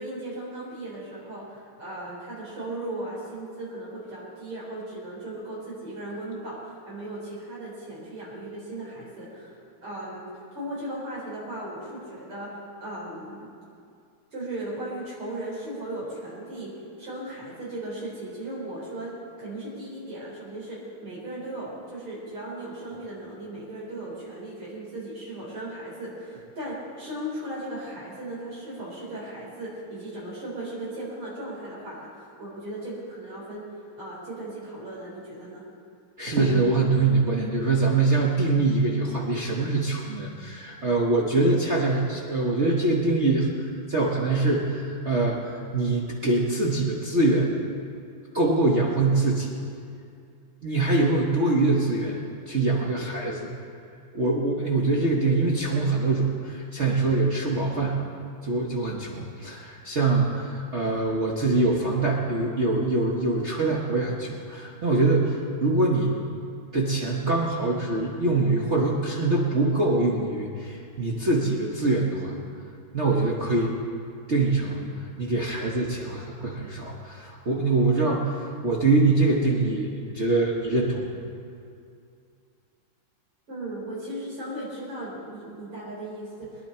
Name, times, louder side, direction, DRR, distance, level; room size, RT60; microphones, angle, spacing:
voice 1, 0.0-13.5 14.3-16.7 17.0-33.6 34.0-35.6 83.5-86.7, right 1 dB, 90° right, -7 dB, 4.9 m, -37 dB
voice 2, 36.2-47.5 48.3-49.5 50.6-52.2 52.5-53.5 54.1-58.0 58.4-66.2 66.7-72.4 72.9-73.8 74.3-81.1, right 2 dB, 40° right, -3 dB, 1.3 m, -24 dB
22.5 x 10.5 x 4.4 m, 2.4 s
omnidirectional pair, 2.4 m